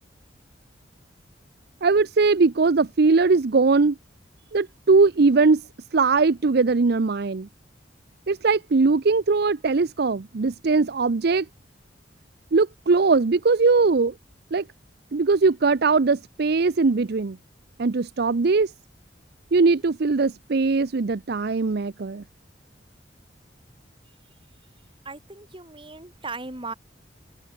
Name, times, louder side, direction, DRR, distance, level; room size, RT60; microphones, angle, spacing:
voice 1, 1.8-4.0 4.5-5.6 5.9-7.5 8.3-11.5 12.5-14.1 14.5-14.7 15.1-17.4 17.8-18.7 19.5-22.2, right 4 dB, 60° right, 0.6 m, -20 dB
voice 2, 25.0-26.7, right 3 dB, 30° right, 6.4 m, -37 dB
head